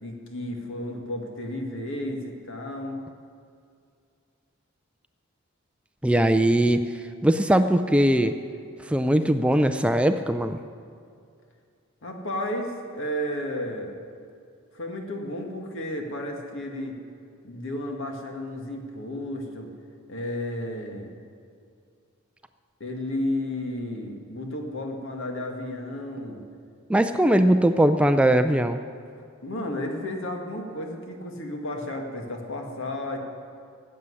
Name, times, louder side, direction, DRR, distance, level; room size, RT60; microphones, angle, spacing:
voice 1, 0.0-3.0 12.0-13.9 14.7-17.0 17.4-19.7 20.1-21.1 22.8-26.4 29.4-33.2, left 1 dB, 65° left, 2 dB, 2.0 m, -32 dB
voice 2, 6.0-6.9 7.2-8.4 8.9-10.6 26.9-28.8, right 1 dB, 5° right, 9 dB, 0.4 m, -20 dB
15.5 x 7.6 x 9.7 m, 2.3 s
head